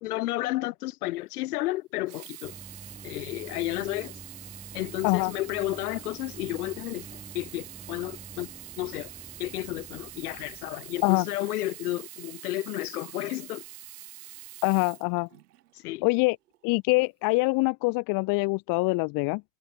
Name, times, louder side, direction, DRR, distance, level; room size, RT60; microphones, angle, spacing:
voice 1, 0.0-2.5 3.0-4.1 4.7-7.1 7.3-8.5 8.8-9.1 9.4-13.6 15.7-16.1, left 18 dB, 75° left, 2.1 m, -32 dB
Sink (filling or washing), 2.0-15.7 16.5-16.6, right 15 dB, 85° right, 1.5 m, -45 dB
Engine, 2.4-11.9, right 3 dB, 15° right, 7.1 m, -48 dB
voice 2, 14.6-15.3 16.0-16.4 16.6-19.4, left 27 dB, 50° left, 0.6 m, -24 dB
hypercardioid pair, 95°, 45 cm